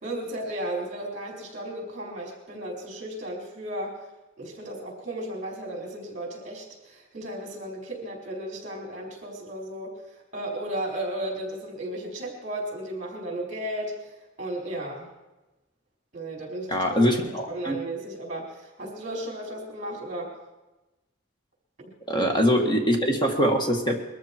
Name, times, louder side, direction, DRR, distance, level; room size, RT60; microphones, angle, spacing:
voice 1, 0.0-4.0 4.4-10.0 10.3-14.0 14.4-15.1 16.1-20.3 21.8-21.9, right 1 dB, 35° right, 0 dB, 4.4 m, -34 dB
voice 2, 16.7-17.8 22.1-24.0, equal, 20° left, 3 dB, 1.9 m, -23 dB
22.0 x 13.5 x 4.6 m, 1.1 s
head